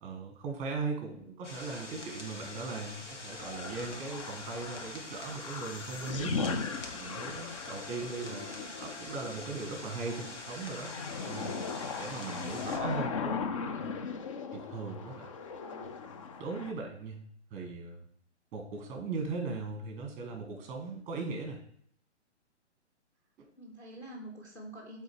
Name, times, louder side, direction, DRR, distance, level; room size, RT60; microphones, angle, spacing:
voice 1, 0.0-6.5 6.9-8.5 8.8-10.9 11.2-11.6 12.0-13.9 14.5-15.3 16.4-17.2 17.5-18.0 18.5-21.6 23.4-23.5, right 4 dB, 20° right, 4 dB, 1.4 m, -39 dB
sound 1, 1.4-12.8, left 2 dB, 90° left, 1.8 m, -45 dB
sound 2, 3.2-16.7, left 5 dB, 30° left, 0.4 m, -38 dB
voice 2, 8.2-8.7 15.6-15.9 23.6-25.0, right 1 dB, 5° left, 1 dB, 0.9 m, -47 dB
8.2 x 3.8 x 4.6 m, 0.63 s
hypercardioid pair, 135°, 35 cm